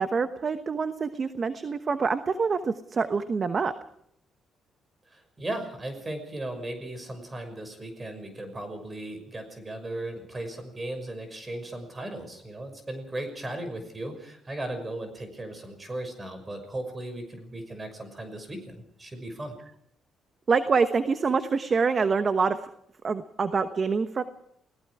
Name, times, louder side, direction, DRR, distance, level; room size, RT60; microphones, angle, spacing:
voice 1, 0.0-3.7 20.5-22.6 23.0-24.2, right 5 dB, 40° right, 10 dB, 1.1 m, -26 dB
voice 2, 5.1-19.5, right 1 dB, 25° right, 7 dB, 6.0 m, -37 dB
29.0 x 18.0 x 4.9 m, 0.71 s
cardioid pair, 90°, 0 cm